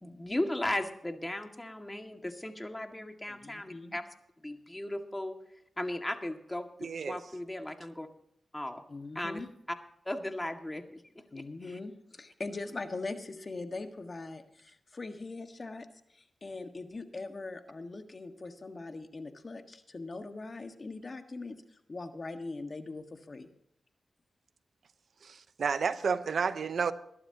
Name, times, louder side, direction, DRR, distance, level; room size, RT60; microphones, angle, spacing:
voice 1, 0.0-4.0 4.4-5.4 5.8-8.1 8.5-8.8 9.2-9.4 10.1-11.0 11.4-11.5, left 1 dB, 15° left, 2.0 m, -36 dB
voice 2, 3.3-4.0 8.9-9.5 11.3-15.9 16.1-21.6 21.9-23.5, left 3 dB, 45° left, 1.6 m, -41 dB
voice 3, 6.8-7.2 25.2-26.9, right 5 dB, 70° right, 0.8 m, -31 dB
22.0 x 12.0 x 2.9 m
cardioid pair, 60°, 0 cm